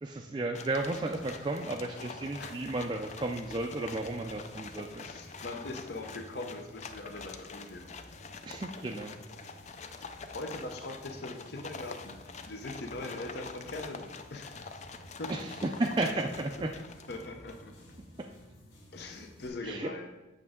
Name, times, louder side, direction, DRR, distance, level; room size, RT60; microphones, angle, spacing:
voice 1, 0.0-5.0 8.4-9.1 15.3-16.7 18.2-18.3 19.6-20.1, right 2 dB, 25° right, 2 dB, 0.4 m, -33 dB
sound 1, 0.5-17.7, left 4 dB, 40° left, 0.4 m, -46 dB
sound 2, 0.7-19.5, equal, 75° left, 1.7 m, -55 dB
voice 2, 5.0-7.9 9.4-12.2 12.4-14.7 15.2-15.3 17.1-17.9 18.9-20.1, left 2 dB, 60° left, 3 dB, 0.8 m, -42 dB
8.3 x 6.4 x 3.6 m, 1.1 s
head